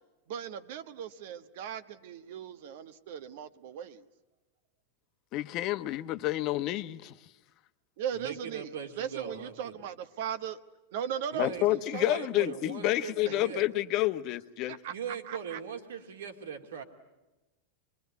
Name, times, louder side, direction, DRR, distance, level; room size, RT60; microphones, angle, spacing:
voice 1, 0.3-4.0 8.0-8.7 9.0-10.6 10.9-12.2 13.2-13.3 14.7-15.6, right 9 dB, 65° right, 11 dB, 1.3 m, -38 dB
voice 2, 5.3-7.1 11.4-14.8, left 15 dB, 50° left, 11 dB, 1.0 m, -29 dB
voice 3, 8.1-9.7 11.3-13.6 14.9-16.8, right 7 dB, 80° right, 5 dB, 2.5 m, -40 dB
26.0 x 22.0 x 9.5 m, 1.1 s
hypercardioid pair, 105°, 0 cm